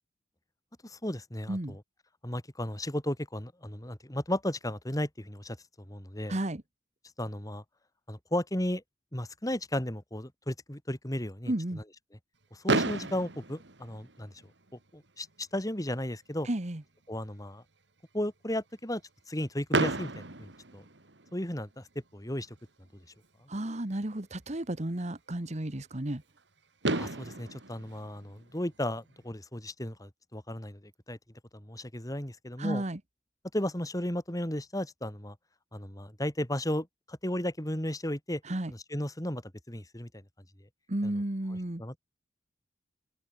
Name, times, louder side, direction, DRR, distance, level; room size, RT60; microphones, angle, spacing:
voice 1, 0.8-1.8 2.2-6.4 7.2-7.6 8.1-8.8 9.1-11.5 12.5-14.3 14.9-16.5 17.1-17.6 18.1-19.0 19.3-20.8 21.3-21.8 22.1-22.6 26.9-30.8 31.1-31.2 31.5-32.8 33.5-35.4 35.7-38.4 38.7-40.2 41.0-41.2 41.8-42.0, left 1 dB, 20° left, 3.6 m, -34 dB
voice 2, 6.3-6.6 11.5-11.8 16.4-16.8 23.5-26.2 32.6-33.0 38.4-38.7 40.9-41.8, right 1 dB, 40° right, 1.5 m, -33 dB
Fireworks, 12.7-14.7 15.5-15.6 15.8-16.0 16.3-16.4 19.7-21.5 23.2-23.3 26.4-26.5 26.8-29.1, right 2 dB, 80° right, 2.5 m, -33 dB
open air
head